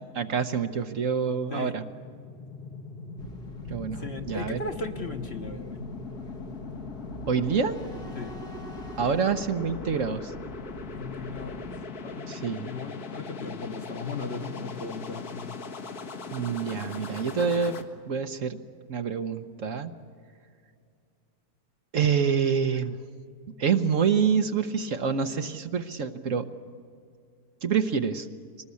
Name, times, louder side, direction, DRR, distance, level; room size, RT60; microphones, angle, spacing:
voice 1, 0.2-1.8 3.7-4.6 7.3-7.8 9.0-10.3 12.3-12.7 16.3-17.8 18.1-18.6 18.9-19.9 21.9-23.0 23.6-26.5 27.6-28.3, right 6 dB, 60° right, 8 dB, 1.2 m, -27 dB
sound 1, 1.3-17.8, left 4 dB, 70° left, 2.1 m, -40 dB
sound 2, 3.2-11.8, right 1 dB, 90° left, 3.9 m, -45 dB
voice 2, 4.0-5.9 8.1-8.4 10.9-11.7 12.0-15.5, left 3 dB, 45° left, 5 dB, 1.4 m, -37 dB
23.5 x 20.0 x 8.4 m, 2.3 s
omnidirectional pair, 1.7 m